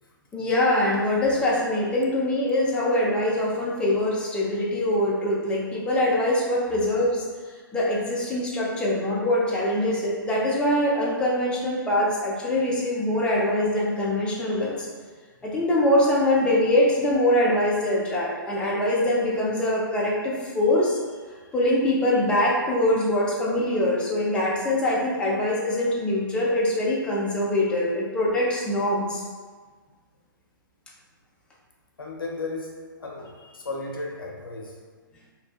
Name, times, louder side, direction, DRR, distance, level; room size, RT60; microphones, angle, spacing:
voice 1, 0.3-14.9 15.4-21.0 21.5-29.2, left 1 dB, 10° left, -5 dB, 0.4 m, -23 dB
voice 2, 32.0-34.8, left 3 dB, 85° left, -1 dB, 0.5 m, -35 dB
2.6 x 2.1 x 2.3 m, 1.5 s
hypercardioid pair, 125°, 11 cm